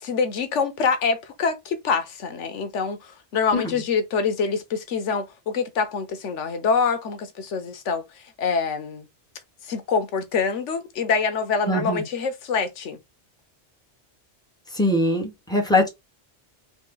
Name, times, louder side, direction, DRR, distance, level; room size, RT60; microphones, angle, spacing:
voice 1, 0.0-9.1 9.6-13.0, left 5 dB, 90° left, 1.1 m, -25 dB
voice 2, 11.7-12.0 14.7-15.9, left 1 dB, 5° left, 1.5 m, -22 dB
4.1 x 2.7 x 3.7 m
omnidirectional pair, 1.2 m